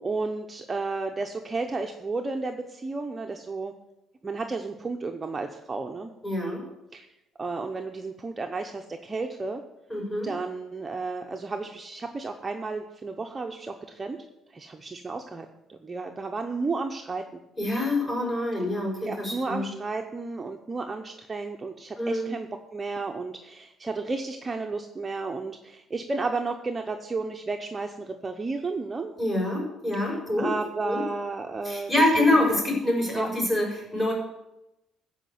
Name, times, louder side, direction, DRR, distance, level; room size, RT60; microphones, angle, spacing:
voice 1, 0.0-3.7 4.2-6.1 6.9-7.1 7.4-9.6 10.2-14.2 14.5-17.4 19.1-29.1 29.9-31.9 32.2-32.5 33.1-33.3, right 3 dB, 20° right, 3 dB, 0.7 m, -33 dB
voice 2, 6.2-6.6 9.9-10.3 17.6-19.7 22.0-22.3 29.2-30.5 30.8-31.0 31.6-34.1, left 1 dB, 15° left, -3 dB, 5.7 m, -25 dB
15.0 x 5.0 x 7.8 m, 0.91 s
cardioid pair, 140°, 0 cm